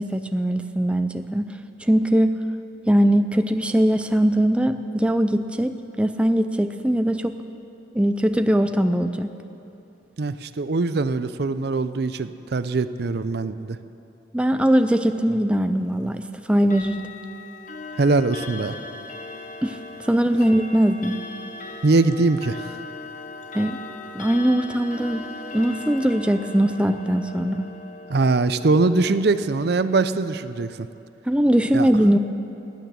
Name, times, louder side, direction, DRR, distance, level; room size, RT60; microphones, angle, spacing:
voice 1, 0.0-1.5 1.8-2.4 2.9-7.4 7.9-9.3 14.3-17.0 19.6-21.2 23.5-23.8 24.1-25.3 25.5-27.7 31.3-32.2, equal, 5° right, 8 dB, 0.4 m, -21 dB
voice 2, 10.2-13.8 18.0-18.8 21.8-22.6 28.1-30.9 31.7-31.9, right 3 dB, 60° right, 13 dB, 0.5 m, -22 dB
Clock, 16.6-29.7, left 3 dB, 45° left, 1.0 m, -38 dB
15.0 x 9.3 x 10.0 m, 2.9 s
head